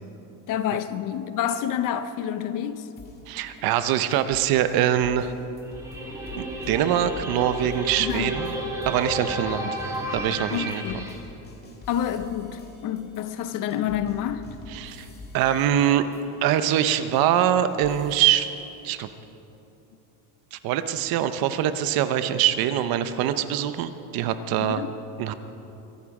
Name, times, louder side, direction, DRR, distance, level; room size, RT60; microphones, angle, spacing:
voice 1, 0.5-2.9 8.0-8.3 10.5-11.1 11.9-14.5 24.6-24.9, left 10 dB, 45° left, 0.7 m, -28 dB
sound 1, 3.0-8.5 8.8-18.6, left 2 dB, 20° left, 1.9 m, -46 dB
voice 2, 3.3-5.3 6.4-8.5 8.9-9.7 10.1-11.0 14.7-15.1 15.3-16.1 16.4-18.5 18.8-19.1 20.5-24.8 25.2-25.3, right 11 dB, 55° right, 0.8 m, -23 dB
sound 2, 5.7-11.2, right 1 dB, 5° right, 1.4 m, -32 dB
23.5 x 11.5 x 4.8 m
cardioid pair, 175°, 44 cm